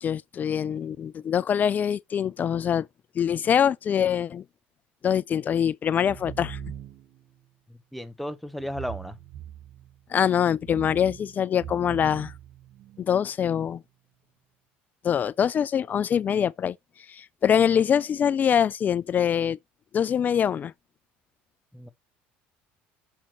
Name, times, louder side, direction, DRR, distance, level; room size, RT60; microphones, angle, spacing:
voice 1, 0.0-2.9 3.2-4.4 5.0-6.6 10.1-12.3 13.0-13.8 15.0-16.8 17.1-19.6 19.9-20.7, left 8 dB, 35° left, 0.4 m, -24 dB
sound 1, 5.9-7.2 8.6-10.0 10.5-13.0, right 10 dB, 65° right, 1.2 m, -41 dB
voice 2, 7.9-9.2 21.7-21.9, equal, ahead, 0.9 m, -34 dB
6.3 x 5.8 x 2.9 m
supercardioid pair, 100°, 5 cm